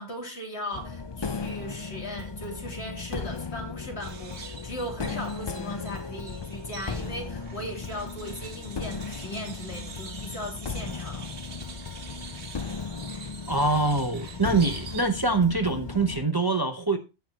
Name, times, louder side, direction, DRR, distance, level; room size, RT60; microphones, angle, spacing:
voice 1, 0.0-11.3, equal, 70° left, 3.3 m, -38 dB
sound 1, 0.7-16.3, left 5 dB, 40° left, 0.4 m, -36 dB
sound 2, 4.0-15.0, right 5 dB, 80° right, 1.5 m, -45 dB
voice 2, 13.5-17.0, right 3 dB, 25° right, 0.7 m, -24 dB
15.0 x 5.9 x 2.9 m
omnidirectional pair, 1.1 m